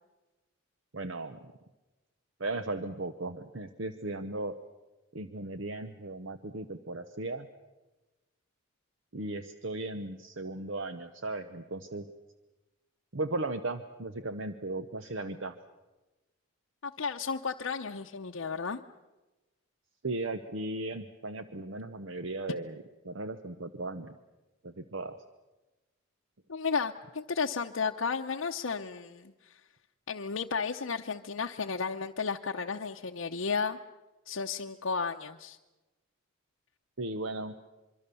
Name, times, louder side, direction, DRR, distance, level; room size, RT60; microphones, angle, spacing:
voice 1, 0.9-1.4 2.4-4.5 5.1-7.5 9.1-12.1 13.1-15.6 20.0-22.8 23.0-24.2 24.6-25.2 37.0-37.5, right 2 dB, 65° right, 10 dB, 0.9 m, -36 dB
voice 2, 16.8-18.8 26.5-29.6 30.1-33.8 34.3-35.6, left 5 dB, 75° left, 2 dB, 0.7 m, -33 dB
25.5 x 23.5 x 6.9 m, 1.1 s
head